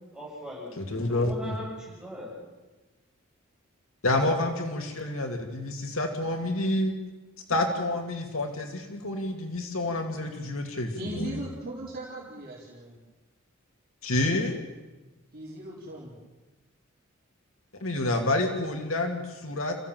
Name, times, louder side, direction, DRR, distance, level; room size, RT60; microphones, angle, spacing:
voice 1, 0.1-2.3, equal, 5° right, -5 dB, 7.4 m, -40 dB
voice 2, 0.8-1.5 4.0-6.9 7.5-11.4 14.0-14.6 17.8-19.8, left 2 dB, 80° left, 3 dB, 2.5 m, -28 dB
voice 3, 10.9-12.9 15.3-16.1, right 1 dB, 50° right, -5 dB, 4.8 m, -38 dB
29.0 x 15.5 x 7.7 m, 1.2 s
head